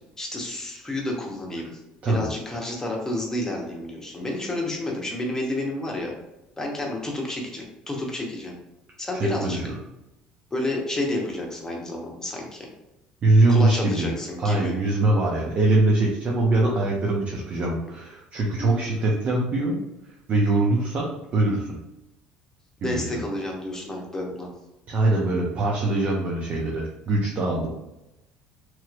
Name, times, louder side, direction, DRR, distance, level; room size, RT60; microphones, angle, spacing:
voice 1, 0.2-1.7 2.1-6.1 6.6-8.5 9.0-9.6 10.5-12.7 13.5-14.7 18.6-19.2 22.8-24.5, left 1 dB, 15° left, -1 dB, 1.0 m, -30 dB
voice 2, 9.1-9.8 13.2-14.1 14.4-19.8 20.3-21.8 22.8-23.1 24.9-27.7, right 2 dB, 45° right, -2 dB, 0.7 m, -22 dB
3.0 x 2.9 x 2.5 m, 0.94 s
supercardioid pair, 85°, 4 cm